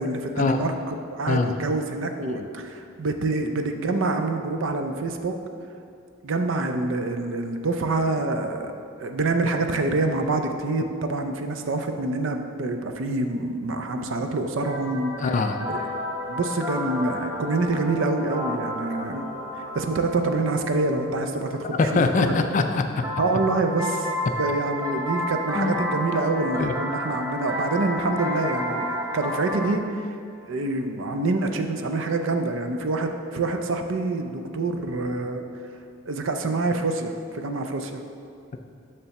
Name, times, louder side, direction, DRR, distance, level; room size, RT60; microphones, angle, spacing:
voice 1, 0.0-5.4 6.2-8.7 9.0-15.1 15.7-15.9 16.3-19.3 19.5-21.9 22.2-22.3 23.2-30.1 30.5-35.4 36.1-38.0, right 2 dB, 65° right, 6 dB, 0.5 m, -26 dB
sound 1, 14.6-22.1 23.0-29.6, equal, 15° right, 0.6 m, -31 dB
voice 2, 15.2-15.8 21.7-22.8 25.5-25.8 26.6-26.7, left 3 dB, 35° left, 6 dB, 0.3 m, -23 dB
6.9 x 3.3 x 5.8 m, 2.5 s
head